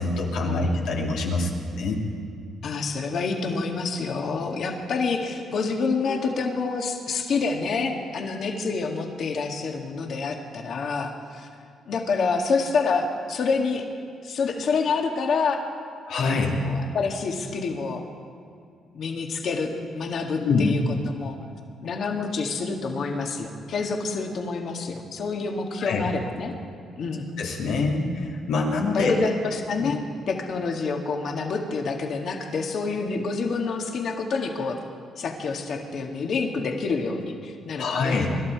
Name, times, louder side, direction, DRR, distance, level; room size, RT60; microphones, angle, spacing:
voice 1, 0.0-2.0 6.1-6.2 16.1-16.5 20.4-20.8 25.8-26.0 27.4-29.2 29.8-29.9 37.8-38.3, left 3 dB, 85° left, -1 dB, 2.6 m, -25 dB
voice 2, 2.6-11.5 11.9-13.9 14.2-15.6 16.2-18.0 18.9-21.4 21.8-26.5 27.0-27.3 28.8-34.8 35.2-38.4, left 4 dB, 60° left, 2 dB, 1.9 m, -28 dB
25.5 x 12.0 x 4.7 m, 2.3 s
cardioid pair, 90°, 0 cm